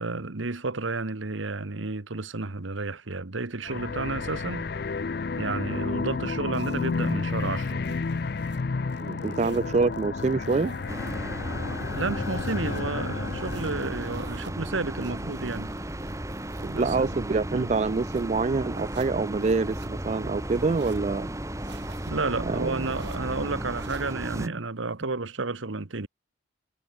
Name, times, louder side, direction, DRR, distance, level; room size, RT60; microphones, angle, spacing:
voice 1, 0.0-4.7 5.4-7.8 9.2-9.6 11.9-15.7 16.7-17.2 17.5-17.7 22.1-26.1, right 3 dB, 80° right, 1.3 m, -31 dB
sound 1, 3.6-14.3, left 4 dB, 50° left, 0.5 m, -31 dB
sound 2, 6.5-8.6 8.9-11.2 11.6-12.8 13.2-14.5 15.0-18.2 18.7-19.9 20.4-21.0 21.6-22.1 22.7-23.2 23.7-24.2, right 3 dB, 60° right, 2.7 m, -49 dB
voice 2, 9.0-10.7 16.6-21.3 22.5-22.8, right 4 dB, 35° right, 0.3 m, -26 dB
sound 3, 10.9-24.5, right 1 dB, 15° right, 1.5 m, -35 dB
head